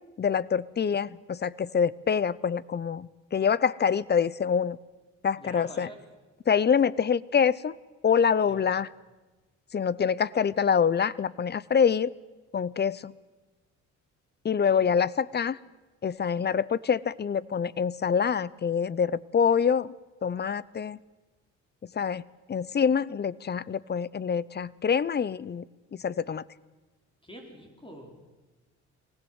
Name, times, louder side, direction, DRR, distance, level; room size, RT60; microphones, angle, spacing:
voice 1, 0.2-4.8 5.2-5.9 6.5-7.7 8.0-8.9 9.7-12.1 12.5-13.1 14.4-15.6 16.0-19.9 20.2-21.0 22.0-22.2 22.5-25.6 26.0-26.4, left 7 dB, 35° left, 22 dB, 0.7 m, -25 dB
voice 2, 5.4-6.0 8.4-8.7 27.2-28.2, equal, 15° left, 3 dB, 5.1 m, -46 dB
23.0 x 19.0 x 8.1 m, 1.2 s
cardioid pair, 90°, 30 cm